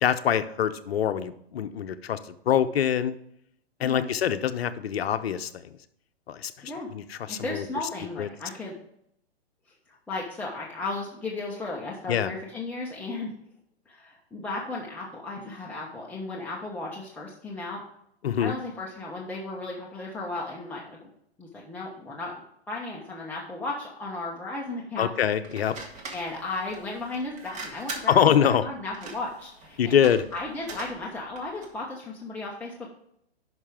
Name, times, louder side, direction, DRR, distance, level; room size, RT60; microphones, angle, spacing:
voice 1, 0.0-3.2 3.8-5.7 6.3-6.5 6.9-7.7 8.2-8.3 12.1-12.3 18.2-18.5 25.0-25.8 28.1-28.6 29.8-30.2, left 9 dB, 65° left, 11 dB, 0.8 m, -24 dB
voice 2, 7.3-8.8 10.1-13.3 13.9-17.8 18.4-21.1 21.4-22.4 22.7-25.1 26.1-30.0 30.3-32.9, left 2 dB, 5° left, -4 dB, 1.1 m, -35 dB
sound 1, 25.4-31.8, right 3 dB, 20° right, 1.7 m, -42 dB
11.0 x 5.8 x 3.6 m, 0.73 s
hypercardioid pair, 130°, 32 cm